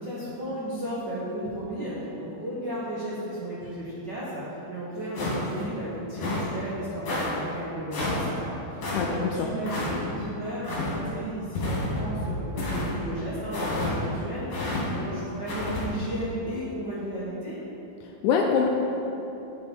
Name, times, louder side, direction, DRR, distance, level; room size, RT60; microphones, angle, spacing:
voice 1, 0.0-17.6, right 1 dB, 70° right, -9 dB, 1.0 m, -34 dB
sound 1, 5.1-5.6 6.2-6.5 7.1-7.3 7.9-8.2 8.8-9.0 9.6-9.9 10.6-10.9 11.5-12.0 12.6-12.9 13.5-13.9 14.5-14.8 15.5-15.8, left 2 dB, 50° left, 3.0 m, -30 dB
voice 2, 8.9-9.5 18.2-18.7, left 6 dB, 80° left, 1 dB, 1.8 m, -24 dB
sound 2, 11.8-14.3, left 1 dB, 35° left, 1.8 m, -36 dB
8.8 x 7.1 x 4.5 m, 3.0 s
omnidirectional pair, 4.1 m